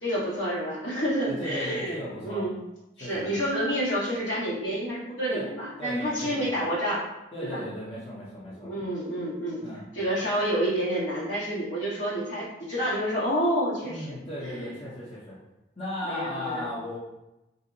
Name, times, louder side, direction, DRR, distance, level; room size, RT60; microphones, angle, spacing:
voice 1, 0.0-2.6 3.0-7.0 7.4-7.6 8.6-9.6 9.9-14.1 14.4-14.7 16.0-16.7, equal, 75° left, -7 dB, 1.3 m, -29 dB
voice 2, 1.3-2.5 3.0-3.3 5.3-5.5 5.8-6.5 7.3-8.7 9.6-9.9 13.8-15.4 15.8-17.0, left 1 dB, 30° left, -8 dB, 0.7 m, -36 dB
2.6 x 2.1 x 3.8 m, 0.94 s
head